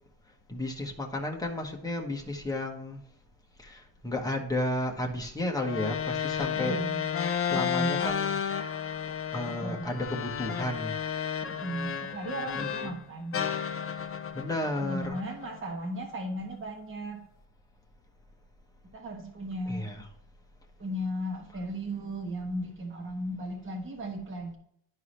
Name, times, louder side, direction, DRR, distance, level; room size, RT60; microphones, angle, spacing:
voice 1, 0.5-3.0 3.6-6.8 7.5-8.4 9.3-10.9 12.5-12.7 14.3-15.2 19.7-20.0, left 1 dB, 10° left, 0 dB, 1.0 m, -32 dB
sound 1, 5.6-13.0 13.3-15.7, left 8 dB, 30° left, 0.4 m, -32 dB
voice 2, 6.5-7.0 7.5-7.9 9.6-9.9 11.4-13.4 14.8-17.2 18.9-19.9 20.8-24.6, equal, 25° right, 1 dB, 1.1 m, -36 dB
11.0 x 4.8 x 3.1 m, 0.69 s
wide cardioid pair, 165°, 47 cm